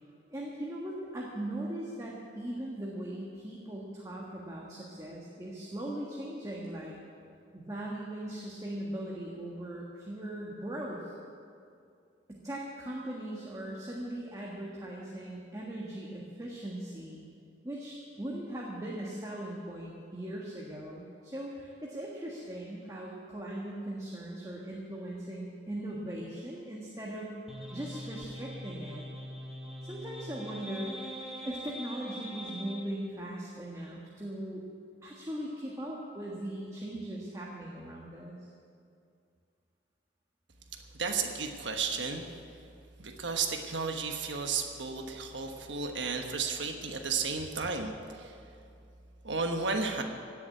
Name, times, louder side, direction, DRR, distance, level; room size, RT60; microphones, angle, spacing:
voice 1, 0.3-6.9 7.5-11.1 12.3-17.2 17.6-27.3 27.7-29.1 29.8-34.6 35.0-38.4, right 1 dB, 20° right, -4 dB, 1.5 m, -39 dB
sound 1, 27.5-32.9, equal, 5° right, 1.3 m, -42 dB
voice 2, 41.0-42.3 43.0-48.4 49.2-50.0, right 4 dB, 80° right, 3 dB, 1.3 m, -33 dB
17.0 x 7.3 x 9.7 m, 2.4 s
head